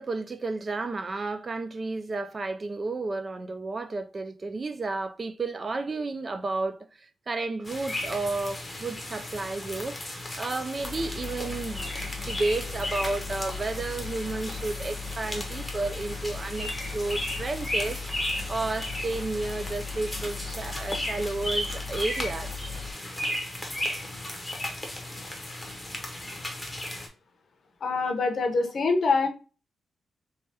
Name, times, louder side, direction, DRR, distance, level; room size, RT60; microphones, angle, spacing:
voice 1, 0.0-22.5, right 3 dB, 30° right, 0.3 m, -32 dB
sound 1, 7.6-27.1, left 1 dB, 10° left, 0.8 m, -35 dB
sound 2, 10.8-22.9, left 5 dB, 85° right, 1.5 m, -38 dB
voice 2, 27.8-29.3, left 3 dB, 50° left, 0.7 m, -24 dB
3.3 x 3.3 x 2.7 m
wide cardioid pair, 145°, 0 cm